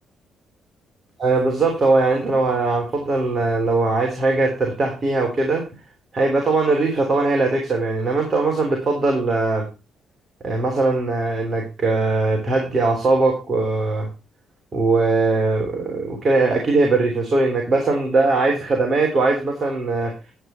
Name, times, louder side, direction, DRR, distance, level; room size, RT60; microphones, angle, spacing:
voice 1, 1.2-5.6 6.1-9.6 10.4-14.1 14.7-20.1, right 3 dB, 40° right, 1 dB, 3.4 m, -20 dB
11.0 x 8.9 x 4.3 m, 0.29 s
cardioid pair, 90°, 0 cm